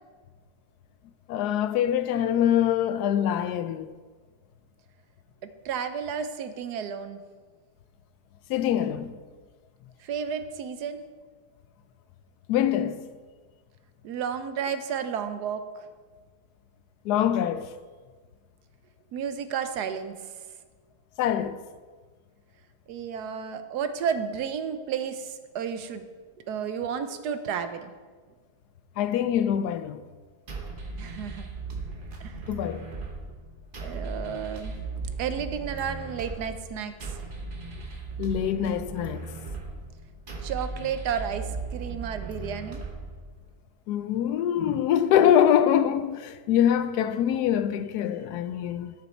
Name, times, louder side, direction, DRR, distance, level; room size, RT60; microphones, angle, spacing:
voice 1, 1.3-3.9 8.5-9.2 12.5-13.1 17.0-17.7 21.2-21.6 29.0-30.0 32.5-32.9 38.2-39.3 43.9-48.9, left 10 dB, 80° left, 1.1 m, -24 dB
voice 2, 5.6-7.2 10.0-11.0 14.0-15.9 19.1-20.1 22.9-26.0 26.5-27.9 31.0-31.5 32.2-32.4 33.8-34.7 35.2-37.1 40.4-42.8, right 7 dB, 80° right, 1.3 m, -32 dB
sound 1, 30.5-43.5, right 3 dB, 35° right, 1.1 m, -37 dB
11.0 x 7.0 x 4.4 m
omnidirectional pair, 1.7 m